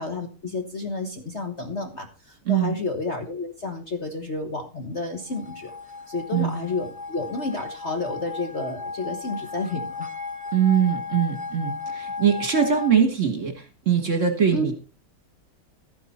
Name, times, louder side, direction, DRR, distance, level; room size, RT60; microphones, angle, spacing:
voice 1, 0.0-5.7 6.1-10.1 14.5-14.7, left 2 dB, 40° left, 5 dB, 1.3 m, -31 dB
voice 2, 2.5-2.8 6.3-6.6 10.5-14.7, right 7 dB, 40° right, 6 dB, 1.6 m, -22 dB
sound 1, 5.1-12.9, left 4 dB, 5° right, 1.0 m, -35 dB
13.0 x 9.6 x 4.3 m, 0.32 s
omnidirectional pair, 2.4 m